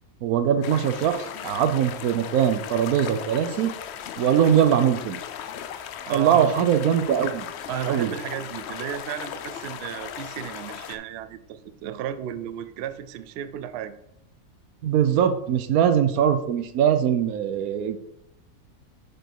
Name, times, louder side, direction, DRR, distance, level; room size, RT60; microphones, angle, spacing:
voice 1, 0.2-1.2 1.4-3.7 4.2-5.2 6.1-7.5 7.9-8.1 14.8-18.0, right 9 dB, 70° right, 9 dB, 1.1 m, -21 dB
sound 1, 0.6-11.0, left 9 dB, 80° left, 0.6 m, -37 dB
voice 2, 6.1-6.5 7.7-13.9, right 10 dB, 90° right, 12 dB, 0.5 m, -33 dB
6.3 x 5.1 x 4.6 m, 0.77 s
omnidirectional pair, 1.7 m